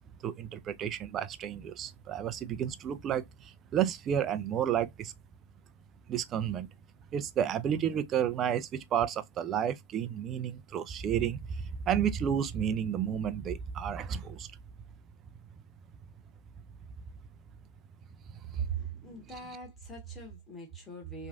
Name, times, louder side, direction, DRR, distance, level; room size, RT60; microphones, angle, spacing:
voice 1, 0.2-5.1 6.1-6.7 7.1-14.5 18.6-18.7, right 9 dB, 25° right, 0.3 m, -31 dB
voice 2, 18.4-21.3, right 6 dB, 15° left, 1.2 m, -39 dB
3.1 x 2.4 x 2.4 m
hypercardioid pair, 110°, 0 cm